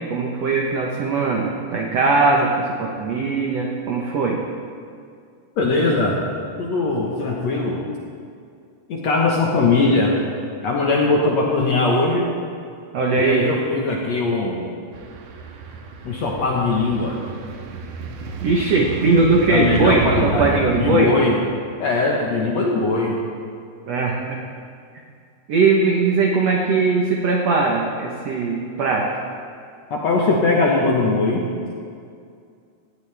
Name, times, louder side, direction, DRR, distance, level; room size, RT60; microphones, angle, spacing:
voice 1, 0.0-2.5 2.8-4.4 12.9-13.5 18.4-21.1 23.9-24.4 25.5-29.1, right 3 dB, 75° right, 0 dB, 1.5 m, -20 dB
voice 2, 5.6-6.3 6.6-7.8 8.9-10.2 10.6-12.3 13.2-14.6 16.0-17.2 19.5-21.4 21.8-23.2 29.9-31.4, left 3 dB, 60° left, -2 dB, 1.9 m, -20 dB
sound 1, 14.9-21.0, right 3 dB, 90° right, 3.2 m, -31 dB
18.5 x 15.0 x 3.4 m, 2.3 s
omnidirectional pair, 4.6 m